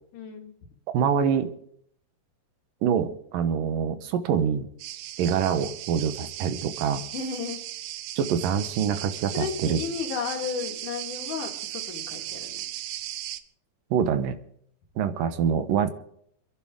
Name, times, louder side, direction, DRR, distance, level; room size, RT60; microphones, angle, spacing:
voice 1, 0.1-0.5 7.1-7.6 9.3-12.7, left 6 dB, 65° left, 2 dB, 3.3 m, -33 dB
voice 2, 0.9-1.5 2.8-4.7 5.2-7.0 8.2-9.8 13.9-14.4 15.0-15.9, right 7 dB, 75° right, 10 dB, 2.7 m, -25 dB
sound 1, 4.8-13.4, right 13 dB, 90° right, 2.6 m, -37 dB
28.5 x 11.0 x 3.7 m, 0.68 s
omnidirectional pair, 4.1 m